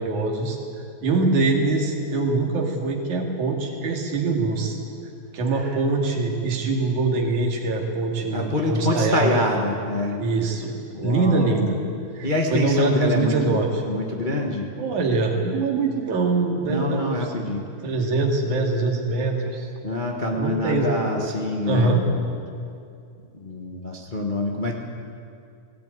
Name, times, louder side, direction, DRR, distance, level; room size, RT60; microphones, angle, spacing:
voice 1, 0.0-4.8 5.3-9.3 10.2-11.8 12.1-13.7 14.8-17.3 17.8-19.7 20.3-20.9 21.7-22.0, right 3 dB, 80° right, 1 dB, 3.7 m, -23 dB
voice 2, 8.3-10.2 10.9-11.7 12.2-13.6 13.9-14.7 16.6-17.6 19.8-22.2 23.3-24.7, left 2 dB, 45° left, 1 dB, 0.6 m, -26 dB
19.0 x 15.0 x 9.4 m, 2.4 s
omnidirectional pair, 3.4 m